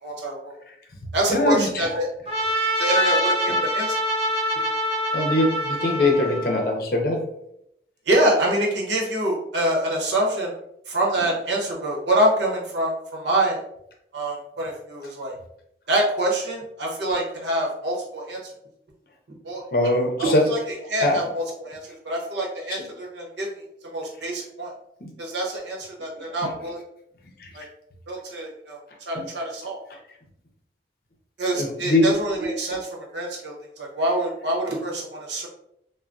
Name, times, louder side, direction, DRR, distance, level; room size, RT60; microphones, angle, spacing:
voice 1, 0.0-0.6 1.1-2.1 2.8-4.0 8.1-10.5 10.9-13.6 14.1-15.3 15.9-18.4 19.4-19.6 20.2-21.8 22.0-23.5 23.9-24.7 25.2-26.8 27.5-27.6 28.1-28.8 29.1-29.8 31.4-35.5, right 1 dB, 85° right, -2 dB, 0.9 m, -25 dB
voice 2, 1.3-1.8 3.5-3.6 5.1-7.2 19.7-20.4 21.0-21.2 22.7-22.8 25.0-25.1 27.4-27.5 29.1-29.2 31.5-32.1, left 1 dB, 55° left, 1 dB, 0.6 m, -22 dB
Trumpet, 2.2-6.7, equal, 30° right, 0.8 m, -25 dB
3.4 x 2.1 x 2.5 m, 0.77 s
head